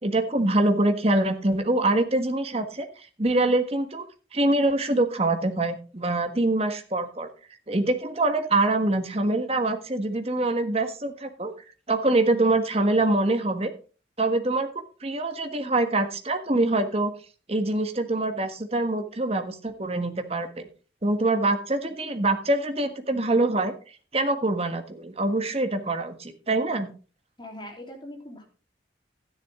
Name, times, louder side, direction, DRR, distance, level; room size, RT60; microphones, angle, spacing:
voice 1, 0.0-4.0 4.3-7.3 7.7-11.5 11.9-13.7 14.2-17.1 17.5-20.7 21.0-23.7 24.1-26.9, right 2 dB, 35° right, 7 dB, 1.4 m, -24 dB
voice 2, 27.4-28.4, left 1 dB, 25° left, 1 dB, 3.4 m, -41 dB
12.5 x 10.5 x 3.6 m, 0.36 s
head